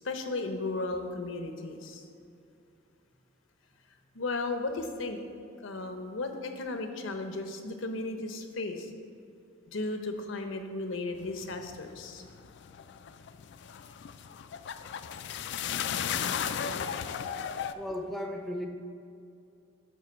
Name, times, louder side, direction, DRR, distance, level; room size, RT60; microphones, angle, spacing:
voice 1, 0.0-2.0 4.1-5.2 5.6-8.9 9.7-12.2, left 2 dB, 75° left, 6 dB, 0.8 m, -35 dB
sound 1, 11.2-17.7, left 8 dB, 60° left, 0.3 m, -35 dB
voice 2, 17.7-18.7, left 1 dB, ahead, 3 dB, 0.6 m, -35 dB
10.5 x 3.8 x 6.7 m, 2.5 s
head